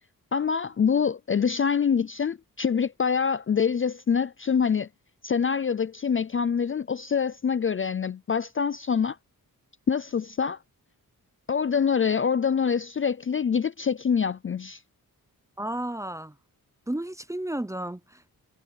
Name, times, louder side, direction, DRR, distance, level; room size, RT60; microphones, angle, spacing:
voice 1, 0.3-4.9 5.2-9.2 9.9-10.6 11.5-14.8, left 6 dB, 35° left, 0.5 m, -25 dB
voice 2, 15.6-16.3 16.9-18.3, right 1 dB, 10° right, 0.7 m, -32 dB
wide cardioid pair, 120°, 37 cm